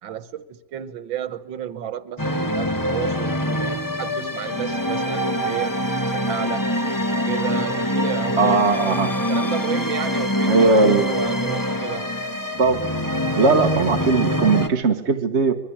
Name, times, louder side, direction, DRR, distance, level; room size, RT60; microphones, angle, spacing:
voice 1, 0.0-6.6 7.3-12.1, right 10 dB, 85° right, 1.9 m, -32 dB
sound 1, 2.2-14.7, equal, 10° left, 1.7 m, -24 dB
voice 2, 8.4-9.1 10.4-11.1 12.6-12.9 13.4-15.5, right 4 dB, 40° right, 1.5 m, -18 dB
25.0 x 22.0 x 8.7 m
omnidirectional pair, 2.1 m